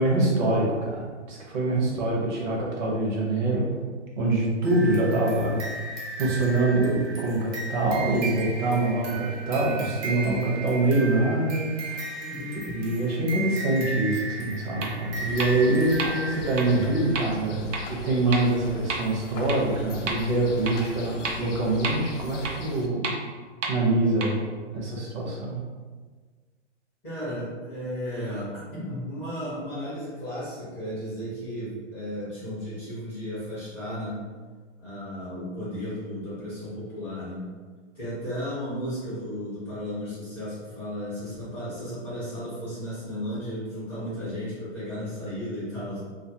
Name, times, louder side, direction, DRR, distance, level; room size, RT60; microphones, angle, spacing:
voice 1, 0.0-3.8 4.2-5.6 6.2-23.1 23.7-24.5 24.7-25.6, right 2 dB, 40° right, -3 dB, 0.7 m, -25 dB
voice 2, 1.8-2.2 12.2-12.8 27.0-34.2 34.8-37.5 37.9-46.0, equal, 5° left, -13 dB, 0.5 m, -34 dB
sound 1, 4.6-17.2, right 3 dB, 65° right, 1.0 m, -36 dB
sound 2, 14.8-14.9 15.4-15.5 16.0-16.1 16.6-16.7 17.2-17.3 17.7-17.8 18.3-18.4 18.9-19.0 19.5-19.6 20.1-20.2 20.7-20.8 21.2-21.3 21.8-21.9 22.4-22.5 23.0-23.1 23.6-23.7 24.2-24.3, right 4 dB, 85° right, 0.6 m, -29 dB
sound 3, 15.2-22.9, left 3 dB, 75° left, 0.5 m, -41 dB
2.4 x 2.4 x 2.7 m, 1.4 s
hypercardioid pair, 155°, 37 cm